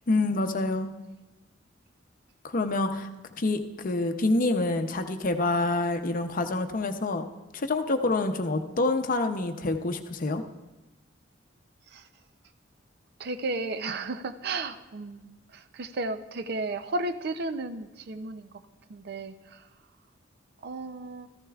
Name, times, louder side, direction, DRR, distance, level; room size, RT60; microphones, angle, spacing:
voice 1, 0.1-0.9 2.4-3.1 3.4-7.3 7.5-10.4, left 2 dB, 45° left, 7 dB, 0.7 m, -27 dB
voice 2, 13.2-18.6 18.9-19.7 20.6-21.3, right 2 dB, 55° right, 10 dB, 0.5 m, -34 dB
14.5 x 14.0 x 2.4 m, 1.1 s
head